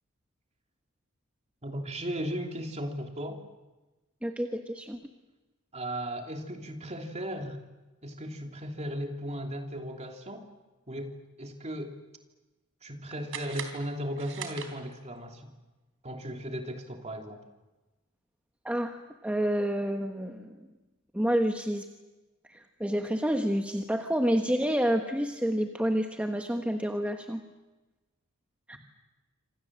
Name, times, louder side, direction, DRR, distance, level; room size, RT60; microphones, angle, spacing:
voice 1, 1.6-3.4 5.7-7.6 8.0-10.5 10.9-11.9 12.8-15.5 16.0-17.4, equal, 30° right, 3 dB, 3.0 m, -36 dB
voice 2, 4.2-5.0 18.6-20.6 21.1-21.9 22.5-27.4 28.7-28.8, equal, 5° right, 4 dB, 1.2 m, -29 dB
sound 1, 13.3-15.2, right 7 dB, 60° right, 3.6 m, -41 dB
27.5 x 26.5 x 7.6 m, 1.1 s
head